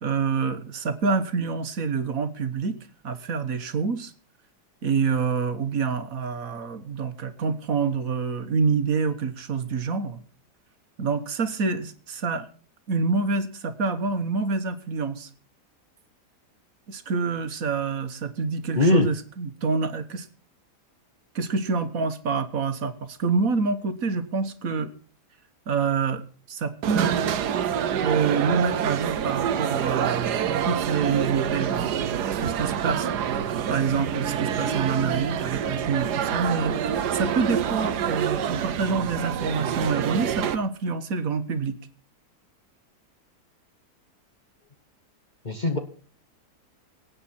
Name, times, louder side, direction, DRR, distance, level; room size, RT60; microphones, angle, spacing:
voice 1, 0.0-2.8 3.0-4.1 4.8-10.2 11.0-12.5 12.9-15.3 16.9-20.3 21.3-24.9 25.7-27.2 28.0-31.9 32.4-33.3 33.7-41.8, right 5 dB, 55° right, 9 dB, 1.6 m, -27 dB
voice 2, 18.8-19.1 45.4-45.8, left 1 dB, 30° left, 6 dB, 1.1 m, -20 dB
sound 1, 26.8-40.6, right 8 dB, 75° right, 1.4 m, -27 dB
25.0 x 8.7 x 4.3 m, 0.39 s
omnidirectional pair, 1.8 m